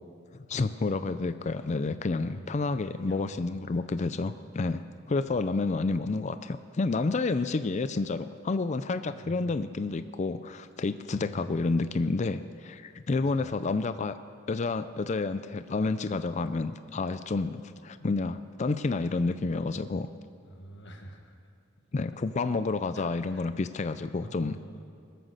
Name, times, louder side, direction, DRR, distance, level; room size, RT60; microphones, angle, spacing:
voice 1, 0.5-14.1 14.5-20.1 21.9-24.6, left 3 dB, 35° left, 12 dB, 0.4 m, -30 dB
voice 2, 2.1-2.5 3.0-4.0 9.1-9.7 11.1-12.0 13.1-13.9 20.4-21.4 22.9-23.5 24.2-24.8, right 1 dB, 65° left, 3 dB, 1.8 m, -48 dB
21.0 x 9.2 x 6.6 m, 2.4 s
head